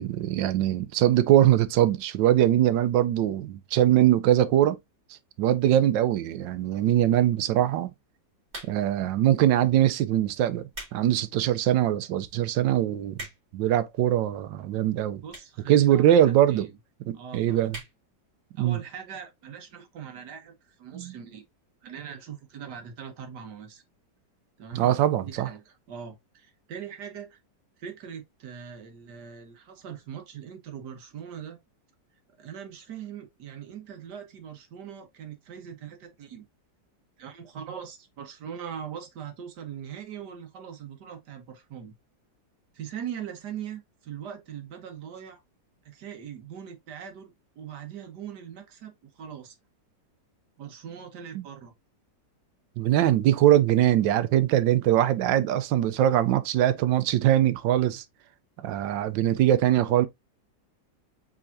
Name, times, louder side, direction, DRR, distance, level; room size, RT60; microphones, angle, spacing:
voice 1, 0.0-4.8 5.4-7.9 8.6-13.2 13.5-15.2 15.7-16.7 17.1-17.8 18.6-18.8 20.9-21.1 24.7-25.5 51.3-51.4 52.8-58.0 58.6-60.1, right 12 dB, 85° right, 1.3 m, -22 dB
sound 1, 8.5-9.0 9.8-10.0 10.5-11.0 11.4-11.5 12.2-12.3 12.4-12.5 12.8-13.6 14.4-14.5 15.3-15.6 15.9-16.0 16.2-16.3 16.5-16.6 16.9-17.2 17.7-18.0 18.4-18.5 18.6-18.7, right 1 dB, 40° right, 2.9 m, -41 dB
voice 2, 15.2-16.7 17.1-17.7 18.6-21.4 21.8-23.8 24.6-24.9 25.2-27.4 27.8-31.6 32.4-36.4 37.2-41.9 42.7-45.4 45.8-49.6 50.6-51.7, right 8 dB, 70° right, 1.6 m, -41 dB
4.8 x 3.6 x 2.6 m
omnidirectional pair, 1.9 m